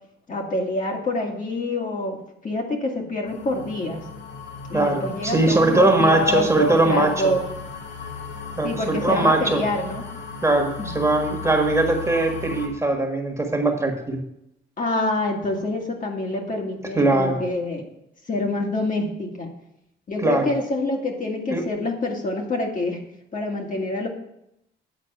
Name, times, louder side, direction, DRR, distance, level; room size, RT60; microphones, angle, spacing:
voice 1, 0.3-2.2 2.4-4.1 4.7-7.4 8.6-10.0 10.8-11.0 14.8-17.8 18.3-19.5 20.1-23.0 23.3-24.1, left 2 dB, 40° left, 0 dB, 1.9 m, -26 dB
sound 1, 3.3-12.7, left 5 dB, 65° left, 1.4 m, -36 dB
voice 2, 4.7-7.1 8.6-9.6 10.4-14.2 16.9-17.4 20.2-20.5 21.5-21.6, right 2 dB, 15° right, 2 dB, 1.6 m, -20 dB
8.9 x 4.2 x 7.1 m, 0.81 s
cardioid pair, 90°, 20 cm